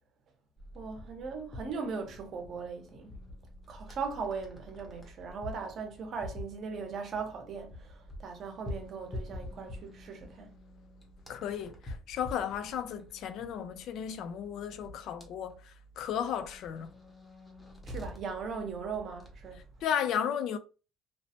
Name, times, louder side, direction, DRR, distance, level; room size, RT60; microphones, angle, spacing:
sound 1, 0.6-19.9, left 1 dB, 15° left, 0.6 m, -47 dB
voice 1, 0.7-3.1 3.7-10.5 17.9-19.6, right 5 dB, 40° right, 0.6 m, -39 dB
voice 2, 11.3-16.9 19.8-20.6, left 8 dB, 55° left, 0.3 m, -34 dB
3.0 x 2.1 x 2.8 m
cardioid pair, 170°, 0 cm